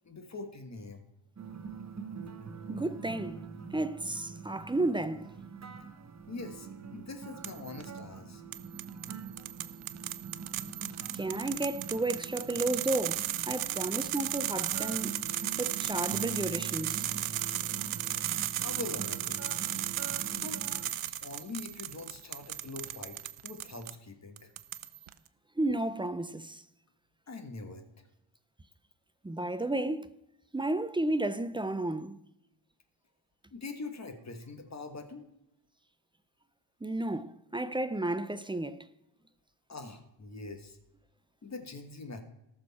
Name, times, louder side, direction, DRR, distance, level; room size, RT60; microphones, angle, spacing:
voice 1, 0.0-1.0 6.3-8.4 18.6-19.4 20.3-20.6 21.2-23.2 23.4-24.5 27.3-27.8 33.5-35.3 39.7-40.8 41.4-42.2, left 3 dB, 35° left, 1.5 m, -43 dB
sound 1, 1.4-20.9, right 5 dB, 35° right, 1.1 m, -44 dB
voice 2, 2.7-5.3 9.9-10.1 11.1-15.1 15.6-17.0 25.6-26.6 29.2-30.1 30.5-32.2 36.8-38.9, right 2 dB, 10° right, 0.3 m, -32 dB
sound 2, 7.4-7.9 8.5-24.0 24.4-25.1, right 13 dB, 85° right, 0.7 m, -35 dB
18.5 x 6.5 x 4.1 m
wide cardioid pair, 135°, 49 cm